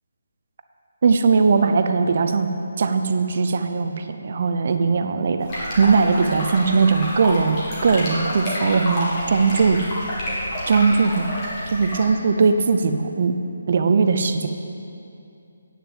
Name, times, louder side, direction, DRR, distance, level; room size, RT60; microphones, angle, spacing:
voice 1, 1.0-2.5 2.8-9.8 10.7-11.3 11.7-13.3 13.7-14.5, right 4 dB, 40° right, 8 dB, 0.5 m, -19 dB
sound 1, 5.4-12.1, equal, 20° left, 2.1 m, -29 dB
9.0 x 6.7 x 7.7 m, 2.6 s
hypercardioid pair, 170°, 0 cm